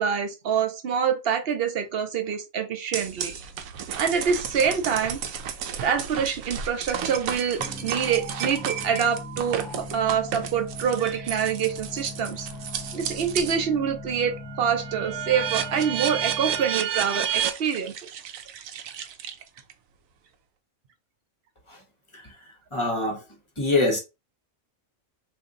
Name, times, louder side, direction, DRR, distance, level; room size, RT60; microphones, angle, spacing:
voice 1, 0.0-3.5 4.0-12.5 12.9-18.1 18.5-18.6, right 7 dB, 55° right, 0.8 m, -26 dB
sound 1, 2.9-13.6 14.1-19.7, right 9 dB, 80° right, 1.0 m, -32 dB
sound 2, 7.6-16.8, left 1 dB, ahead, 0.6 m, -39 dB
voice 2, 22.7-23.2 23.6-24.0, left 2 dB, 25° left, 0.9 m, -24 dB
2.8 x 2.6 x 3.7 m
omnidirectional pair, 1.4 m